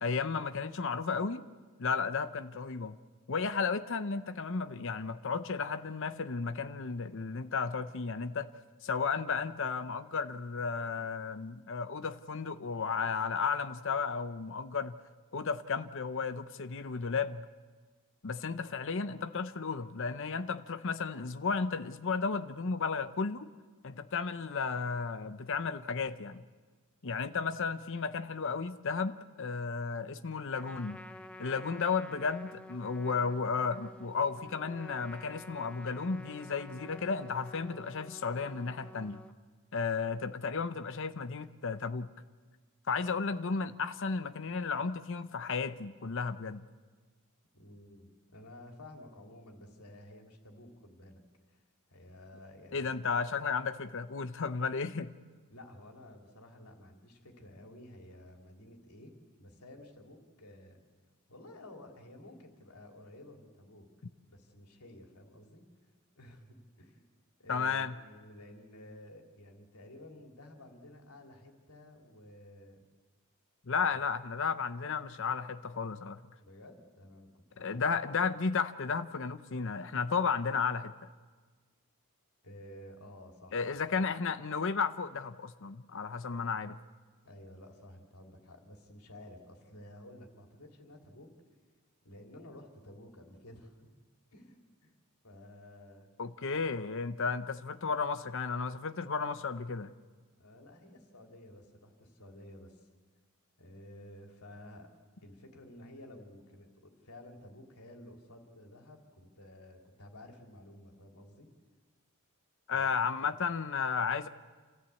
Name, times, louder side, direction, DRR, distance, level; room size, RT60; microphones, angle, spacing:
voice 1, 0.0-1.4 1.8-3.0 3.3-8.5 8.8-15.0 15.3-17.5 18.2-23.5 23.8-26.4 27.0-31.0 31.4-39.2 39.7-42.1 42.9-46.7 52.7-55.1 67.5-67.9 73.7-76.2 77.6-80.9 83.5-86.8 96.2-99.9 112.7-114.3, left 5 dB, 60° left, 0.7 m, -33 dB
Trumpet, 30.5-39.3, left 1 dB, 5° left, 0.7 m, -50 dB
voice 2, 47.5-51.2 51.5-51.6 51.9-52.9 55.5-59.1 59.4-60.8 61.3-63.9 64.3-65.6 66.1-67.0 67.4-72.8 73.9-74.1 76.4-77.9 82.4-83.8 87.2-91.3 92.0-93.9 94.3-94.9 95.2-96.1 100.4-102.9 103.6-104.9 105.2-111.5 112.7-112.9 113.2-113.4, left 1 dB, 90° left, 3.2 m, -52 dB
28.0 x 14.5 x 8.4 m
head